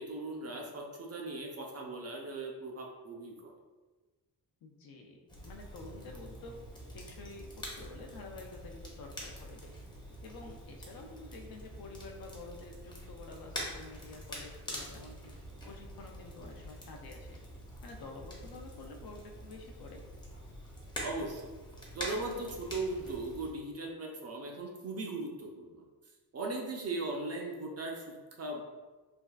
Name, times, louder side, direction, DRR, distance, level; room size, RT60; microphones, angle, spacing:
voice 1, 0.0-3.5 21.0-21.4 21.9-25.8 26.3-28.6, right 2 dB, 40° right, 0 dB, 0.5 m, -38 dB
voice 2, 4.6-6.6 6.9-9.8 10.2-15.3 15.7-17.4 17.8-20.0, left 3 dB, 60° left, 2 dB, 0.5 m, -49 dB
Crackle, 5.3-23.5, equal, 10° left, 0.6 m, -46 dB
3.4 x 2.4 x 2.3 m, 1.3 s
cardioid pair, 115°, 40 cm